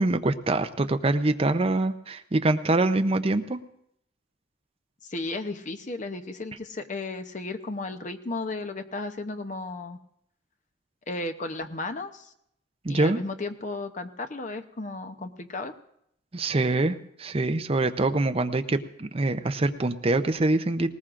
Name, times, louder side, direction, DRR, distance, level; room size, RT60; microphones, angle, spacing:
voice 1, 0.0-3.6 12.8-13.2 16.3-20.9, right 2 dB, 30° right, 8 dB, 0.6 m, -24 dB
voice 2, 5.0-10.0 11.1-12.3 12.9-15.7, left 2 dB, 40° left, 8 dB, 0.8 m, -34 dB
19.0 x 19.0 x 2.5 m, 0.75 s
head